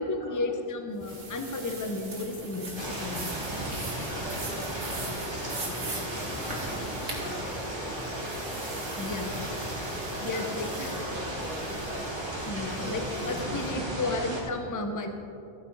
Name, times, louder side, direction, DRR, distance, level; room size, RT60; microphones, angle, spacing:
voice 1, 0.0-3.4 9.0-9.4 10.2-10.9 12.5-13.0 13.3-15.1, left 2 dB, 20° left, 6 dB, 0.6 m, -33 dB
sound 1, 0.9-13.8, right 3 dB, 45° right, 1.4 m, -48 dB
sound 2, 1.1-7.2, right 2 dB, 85° right, 2.2 m, -40 dB
sound 3, 2.8-14.4, right 1 dB, 25° right, 1.7 m, -35 dB
voice 2, 4.0-6.9 7.2-9.4 9.9-10.5 10.8-12.1 12.8-14.2, left 2 dB, 50° left, -6 dB, 1.7 m, -43 dB
13.5 x 9.7 x 3.9 m, 2.8 s
omnidirectional pair, 1.1 m